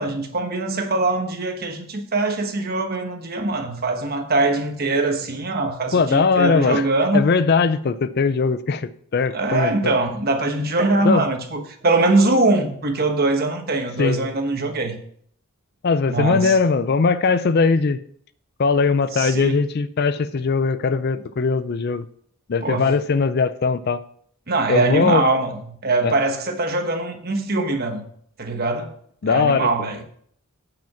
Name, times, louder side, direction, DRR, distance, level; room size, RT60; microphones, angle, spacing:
voice 1, 0.0-7.2 9.3-15.0 16.1-16.6 19.1-19.6 22.6-22.9 24.5-28.1 28.4-29.0 29.3-30.0, right 2 dB, 45° right, 1.2 m, -22 dB
voice 2, 5.9-6.9 7.1-9.9 11.0-11.2 14.0-14.2 15.8-18.0 18.6-22.0 22.5-24.0 24.7-25.2 26.0-26.1 29.2-29.7, left 4 dB, 45° left, 0.4 m, -20 dB
9.2 x 5.1 x 5.8 m
head